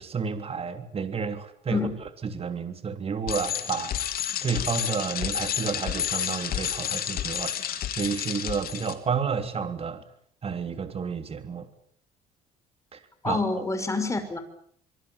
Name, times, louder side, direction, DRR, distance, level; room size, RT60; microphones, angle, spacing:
voice 1, 0.0-1.9 2.2-3.9 4.4-10.0 10.4-11.7 12.9-13.0 13.2-13.4, right 5 dB, 35° right, 9 dB, 3.4 m, -31 dB
Bicycle, 3.3-8.9, left 10 dB, 60° left, 3.4 m, -30 dB
voice 2, 13.2-14.4, left 3 dB, 15° left, 10 dB, 5.7 m, -27 dB
25.5 x 23.0 x 8.8 m, 0.65 s
cardioid pair, 110°, 17 cm